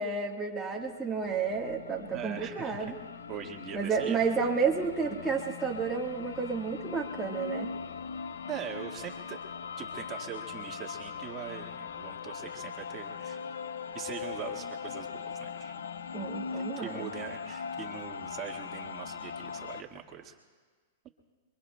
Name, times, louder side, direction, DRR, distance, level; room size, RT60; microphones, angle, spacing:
voice 1, 0.0-3.0 3.7-7.7 16.1-17.1, right 5 dB, 5° right, -4 dB, 1.5 m, -31 dB
sound 1, 0.7-19.8, left 6 dB, 90° left, 0.6 m, -40 dB
voice 2, 2.1-2.9 3.3-4.2 8.5-9.4 9.8-13.4 13.9-15.7 16.5-20.3, right 8 dB, 30° right, 1 dB, 1.6 m, -42 dB
28.5 x 23.0 x 2.2 m, 1.5 s
hypercardioid pair, 135°, 0 cm